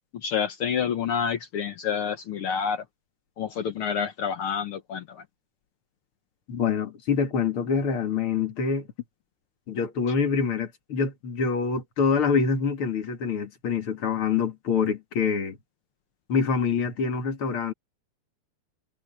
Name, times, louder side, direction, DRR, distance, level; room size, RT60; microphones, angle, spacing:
voice 1, 0.1-2.8 3.4-5.2, left 7 dB, 65° left, 1.4 m, -28 dB
voice 2, 6.5-8.9 9.7-15.6 16.3-17.7, left 5 dB, 45° left, 2.7 m, -25 dB
omnidirectional pair, 3.7 m